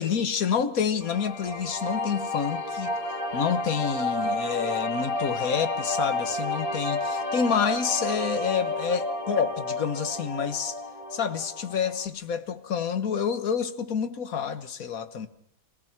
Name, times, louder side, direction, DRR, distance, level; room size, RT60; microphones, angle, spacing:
voice 1, 0.0-2.9 3.3-10.7 11.1-15.3, left 6 dB, 90° left, 1.7 m, -28 dB
sound 1, 1.0-12.1, left 2 dB, 25° left, 2.4 m, -31 dB
25.5 x 18.0 x 5.9 m
omnidirectional pair, 1.4 m